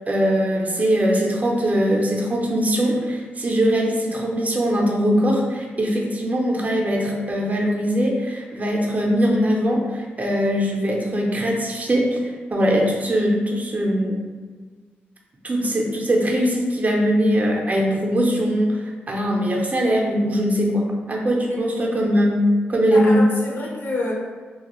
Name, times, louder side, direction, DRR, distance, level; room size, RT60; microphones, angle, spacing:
voice 1, 0.1-12.2 12.5-14.2 15.4-22.4 22.7-23.2, equal, 35° right, -1 dB, 0.6 m, -21 dB
voice 2, 21.5-22.0 22.9-24.1, left 2 dB, 55° left, -3 dB, 0.8 m, -28 dB
2.4 x 2.2 x 3.0 m, 1.4 s
cardioid pair, 55°, 4 cm